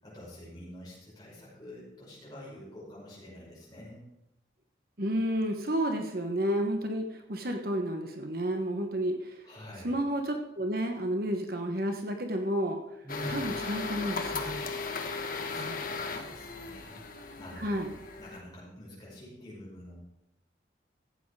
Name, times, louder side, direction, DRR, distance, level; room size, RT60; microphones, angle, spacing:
voice 1, 0.0-4.0 9.4-9.9 13.0-13.6 15.5-19.9, left 1 dB, 20° left, -6 dB, 5.7 m, -46 dB
voice 2, 5.0-9.5 9.8-12.8 13.3-14.7 15.6-15.8 17.6-17.9, equal, 50° right, 4 dB, 1.1 m, -31 dB
sound 1, 13.1-18.4, left 4 dB, 50° left, 1.1 m, -36 dB
14.5 x 8.1 x 4.8 m, 0.87 s
head